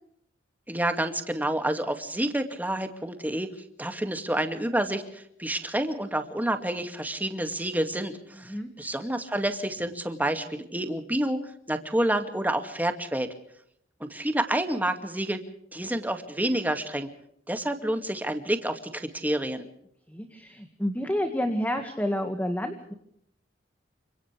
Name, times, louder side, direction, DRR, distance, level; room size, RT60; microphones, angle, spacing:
voice 1, 0.7-3.5 3.8-11.4 11.7-13.3 14.0-15.4 15.7-17.1 17.5-19.7, right 1 dB, 10° right, 6 dB, 2.3 m, -29 dB
voice 2, 20.1-22.9, equal, 10° left, 6 dB, 1.9 m, -29 dB
29.5 x 26.0 x 3.5 m, 0.70 s
head